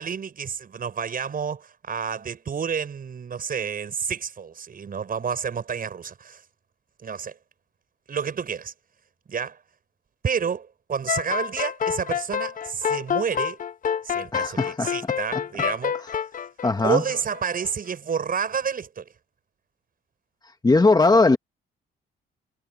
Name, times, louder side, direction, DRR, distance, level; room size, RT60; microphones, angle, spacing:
voice 1, 0.0-6.4 7.0-7.4 8.1-8.7 9.3-9.6 10.2-13.6 14.0-15.9 16.8-19.1, right 6 dB, 45° right, 6.2 m, -29 dB
sound 1, 11.1-17.7, left 8 dB, 40° left, 0.7 m, -28 dB
voice 2, 14.3-14.9 16.6-17.0 20.6-21.4, left 3 dB, 20° left, 1.7 m, -19 dB
cardioid pair, 90°, 20 cm